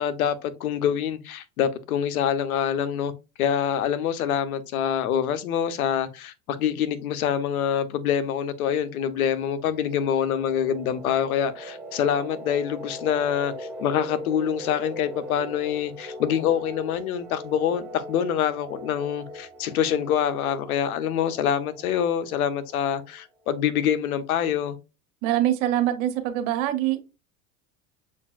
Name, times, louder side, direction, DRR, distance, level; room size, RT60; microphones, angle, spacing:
voice 1, 0.0-3.1 3.4-24.8, left 9 dB, 85° left, 0.7 m, -25 dB
sound 1, 8.9-23.3, equal, 5° right, 1.7 m, -41 dB
voice 2, 25.2-27.0, right 12 dB, 70° right, 1.1 m, -24 dB
6.9 x 2.6 x 2.3 m
hypercardioid pair, 90°, 42 cm